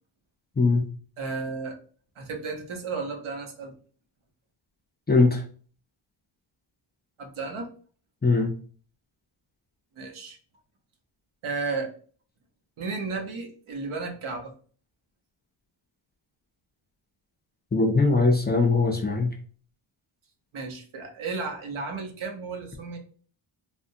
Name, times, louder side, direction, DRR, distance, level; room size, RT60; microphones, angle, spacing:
voice 1, 0.6-0.9 5.1-5.4 8.2-8.5 17.7-19.3, left 3 dB, 20° left, 1 dB, 0.4 m, -21 dB
voice 2, 1.2-1.8 2.2-3.7 7.2-7.7 9.9-10.4 11.4-11.9 12.8-14.5 20.5-23.0, right 4 dB, 75° right, 3 dB, 1.0 m, -33 dB
3.4 x 2.1 x 2.6 m, 0.43 s
wide cardioid pair, 125°, 49 cm